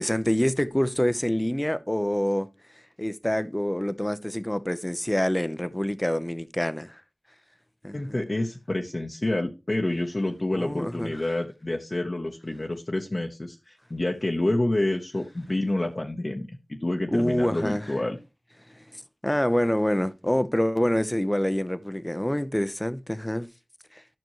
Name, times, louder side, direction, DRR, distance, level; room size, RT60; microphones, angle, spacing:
voice 1, 0.0-2.5 3.0-7.0 7.8-8.0 10.5-11.1 17.1-17.9 19.2-23.5, left 1 dB, 15° left, 0.7 m, -26 dB
voice 2, 7.9-18.2, left 1 dB, 45° left, 0.9 m, -28 dB
12.0 x 6.0 x 3.0 m
wide cardioid pair, 45°, 0 cm